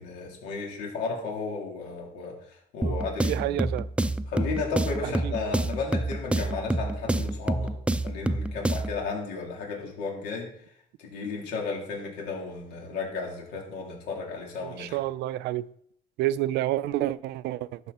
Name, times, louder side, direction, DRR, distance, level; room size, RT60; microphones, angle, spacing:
voice 1, 0.0-3.6 4.3-7.7 8.0-10.5 11.0-15.0, left 4 dB, 85° left, 3.6 m, -34 dB
sound 1, 2.8-9.0, right 2 dB, 5° right, 0.5 m, -28 dB
voice 2, 2.8-3.9 5.0-5.3 14.6-15.7 16.2-17.8, right 14 dB, 80° right, 0.5 m, -29 dB
12.0 x 7.0 x 4.3 m
cardioid pair, 110°, 17 cm